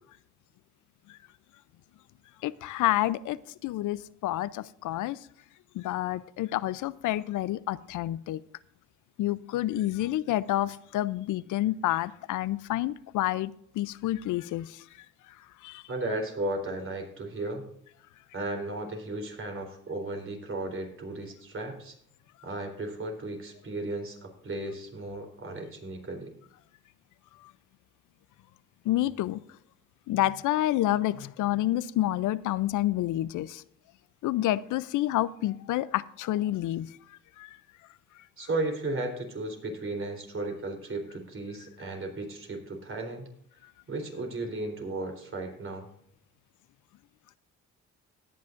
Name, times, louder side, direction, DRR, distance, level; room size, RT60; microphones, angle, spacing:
voice 1, 2.4-3.4 3.6-5.2 5.7-8.4 9.2-14.8 15.6-15.8 28.9-29.4 30.1-33.6 34.2-36.9 37.4-37.5, left 14 dB, 80° left, 18 dB, 0.6 m, -29 dB
voice 2, 15.9-17.7 18.3-22.0 22.4-26.3 38.4-43.3 43.9-45.9, right 2 dB, 45° right, 3 dB, 3.8 m, -35 dB
18.0 x 9.4 x 2.6 m, 0.70 s
cardioid pair, 90°, 30 cm